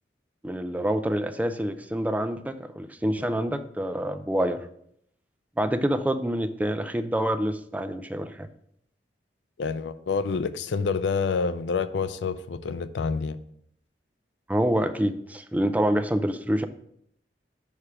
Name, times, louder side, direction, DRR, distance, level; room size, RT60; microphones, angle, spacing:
voice 1, 0.4-4.6 5.6-8.5 14.5-16.7, right 1 dB, 10° right, 10 dB, 0.4 m, -27 dB
voice 2, 9.6-13.4, left 5 dB, 85° left, 13 dB, 0.4 m, -27 dB
4.9 x 4.9 x 5.7 m, 0.71 s
head